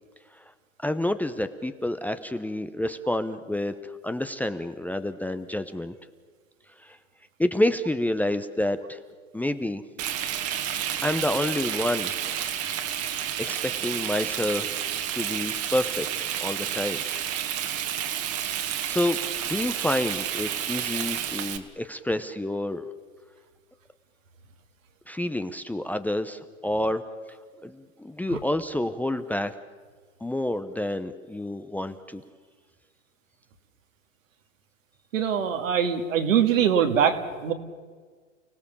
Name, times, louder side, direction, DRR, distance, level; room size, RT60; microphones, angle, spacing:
voice 1, 0.8-5.9 6.8-7.0 7.4-9.0 9.3-9.8 11.0-12.1 13.4-14.8 15.1-16.1 16.4-17.0 18.9-19.2 19.4-22.8 25.1-27.0 27.6-29.5 30.2-32.2, left 1 dB, 5° left, 10 dB, 0.8 m, -28 dB
Frying (food), 10.0-21.6, right 10 dB, 35° right, 2.0 m, -30 dB
voice 2, 35.1-37.5, right 8 dB, 70° right, 6 dB, 2.6 m, -23 dB
29.5 x 18.0 x 7.1 m, 1.6 s
hypercardioid pair, 100°, 40 cm